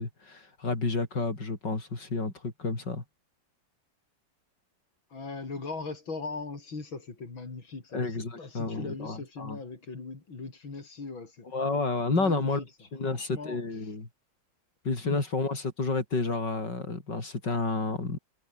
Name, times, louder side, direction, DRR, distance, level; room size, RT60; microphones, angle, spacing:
voice 1, 0.0-3.0 7.9-9.6 11.5-12.6 12.9-14.1 14.9-18.2, left 3 dB, 60° left, 5.6 m, -30 dB
voice 2, 5.1-11.5 12.0-12.6 13.0-14.0 15.0-15.2, left 4 dB, 85° left, 5.1 m, -40 dB
omnidirectional pair, 2.1 m